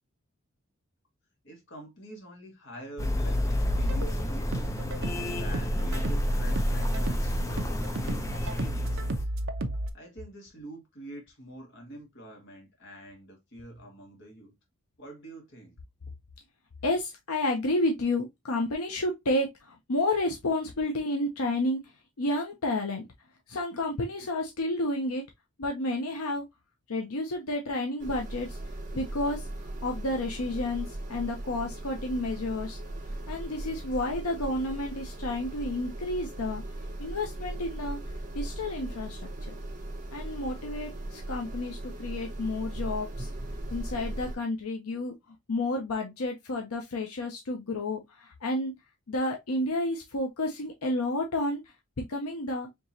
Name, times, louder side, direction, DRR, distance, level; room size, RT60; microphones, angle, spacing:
voice 1, 1.4-4.8 5.3-9.3 9.9-14.5 15.0-15.7, right 1 dB, 55° left, 1.6 m, -46 dB
sound 1, 3.0-9.2, left 1 dB, 15° left, 0.5 m, -29 dB
sound 2, 3.6-9.9, right 1 dB, 55° right, 0.6 m, -35 dB
voice 2, 16.8-21.9 22.2-23.0 23.5-25.2 25.6-26.4 26.9-28.6 28.9-29.4 29.8-32.8 33.3-36.6 37.0-38.0 38.3-39.2 39.5-39.6 40.1-43.3 43.7-45.1 45.5-48.8 49.1-51.6 52.0-52.7, left 2 dB, 85° left, 0.7 m, -31 dB
sound 3, 28.0-44.4, right 1 dB, 35° right, 1.1 m, -38 dB
4.6 x 2.9 x 2.7 m
head